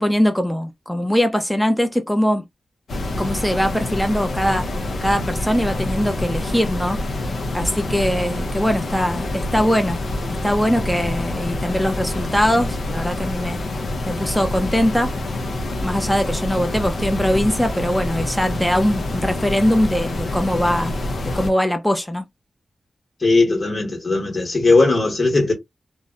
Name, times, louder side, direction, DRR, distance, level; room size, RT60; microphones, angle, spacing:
voice 1, 0.0-2.4 3.2-7.0 7.5-10.0 10.4-13.6 14.1-15.1 15.8-20.9 21.2-22.2, equal, 5° left, 0.5 m, -21 dB
sound 1, 2.9-21.5, left 1 dB, 80° left, 0.5 m, -26 dB
voice 2, 23.2-25.5, left 3 dB, 65° left, 1.0 m, -18 dB
2.6 x 2.1 x 2.3 m
cardioid pair, 50°, 0 cm